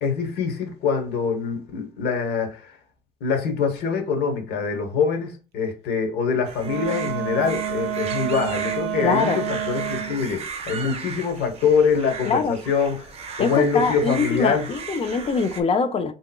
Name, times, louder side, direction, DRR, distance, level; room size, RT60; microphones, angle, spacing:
voice 1, 0.0-2.7 3.2-13.1 13.4-14.7, left 5 dB, 75° left, 1.0 m, -24 dB
sound 1, 6.4-15.6, right 5 dB, 35° right, 0.6 m, -36 dB
Wind instrument woodwind instrument, 6.6-10.3, right 9 dB, 85° right, 0.4 m, -29 dB
voice 2, 9.0-9.4 12.3-12.6 13.4-16.1, left 5 dB, 35° left, 0.4 m, -23 dB
3.4 x 2.9 x 2.2 m
cardioid pair, 110°, 17 cm